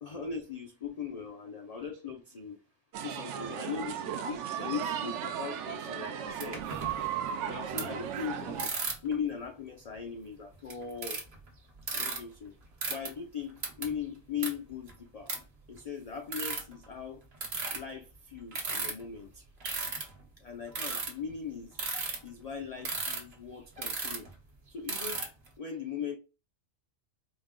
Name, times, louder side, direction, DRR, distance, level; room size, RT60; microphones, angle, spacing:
voice 1, 0.0-2.6 3.0-6.7 7.4-8.7 9.0-11.2 11.9-12.6 12.9-15.4 15.7-17.2 17.7-19.4 20.4-21.8 22.2-24.3 24.7-25.3 25.6-26.2, left 7 dB, 75° left, 0.3 m, -39 dB
sound 1, 2.9-8.7, right 8 dB, 75° right, 0.8 m, -36 dB
sound 2, 6.4-7.2 7.8-7.9 8.6-9.1 9.9-10.0 10.5-11.5 11.8-12.2 12.8-13.1 13.6-13.9 14.4-14.5 14.9-15.0 15.3-15.4 15.7-15.8 16.3-16.7 17.4-17.8 18.5-19.0 19.6-20.2 20.7-21.3 21.8-22.2 22.8-23.3 23.8-24.3 24.9-25.5, right 3 dB, 55° right, 1.2 m, -34 dB
4.9 x 2.1 x 3.6 m
omnidirectional pair, 1.3 m